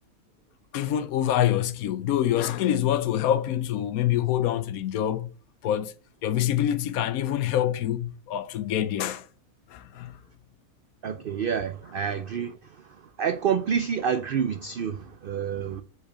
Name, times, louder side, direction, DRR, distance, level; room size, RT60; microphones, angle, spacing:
voice 1, 0.7-5.3 5.6-5.9 6.2-9.2 9.7-10.1, left 11 dB, 80° left, 1.1 m, -26 dB
voice 2, 11.0-12.6 13.2-15.8, right 7 dB, 90° right, 0.4 m, -28 dB
5.4 x 4.8 x 4.9 m
omnidirectional pair, 1.5 m